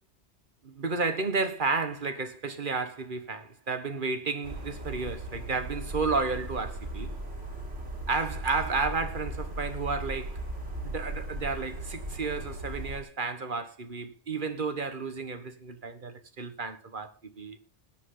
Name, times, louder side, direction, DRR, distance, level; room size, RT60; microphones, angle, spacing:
voice 1, 0.6-7.1 8.1-10.4 10.8-17.6, right 4 dB, 45° right, 1.6 m, -32 dB
sound 1, 4.4-13.0, right 1 dB, 85° right, 4.3 m, -37 dB
20.0 x 8.6 x 3.9 m
omnidirectional pair, 1.2 m